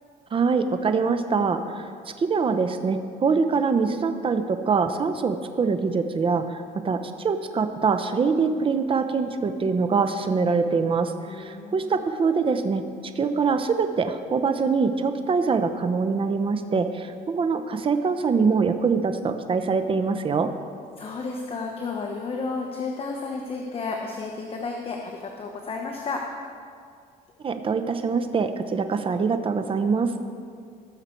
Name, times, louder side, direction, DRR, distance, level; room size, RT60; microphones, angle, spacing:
voice 1, 0.3-1.9 2.2-12.8 13.2-20.5 27.4-30.1, right 5 dB, 30° right, 8 dB, 0.8 m, -24 dB
voice 2, 11.3-12.0 21.0-26.3, left 4 dB, 35° left, 1 dB, 1.1 m, -32 dB
18.5 x 6.7 x 4.5 m, 2.2 s
cardioid pair, 110°, 17 cm